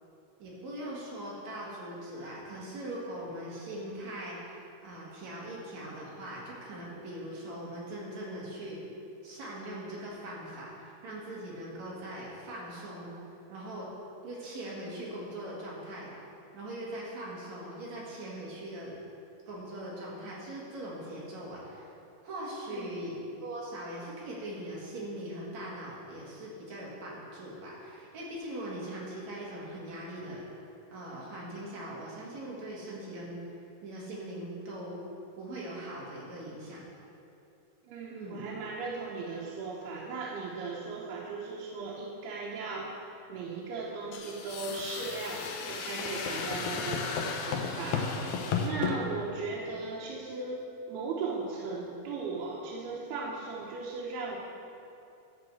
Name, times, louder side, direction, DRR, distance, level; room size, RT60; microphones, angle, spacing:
voice 1, 0.4-8.8 9.2-13.1 13.5-13.9 14.2-16.2 16.5-18.9 19.5-21.9 22.2-23.2 23.4-30.5 30.9-33.4 33.8-35.0 35.4-36.8 38.1-38.5 49.7-49.8, right 1 dB, 55° right, -5 dB, 2.8 m, -41 dB
voice 2, 22.7-23.0 37.9-42.9 43.3-50.6 50.9-54.4, right 4 dB, 85° right, -5 dB, 3.0 m, -37 dB
sound 1, 44.1-49.0, left 5 dB, 80° left, 1.6 m, -34 dB
12.5 x 4.9 x 7.6 m, 2.8 s
omnidirectional pair, 4.5 m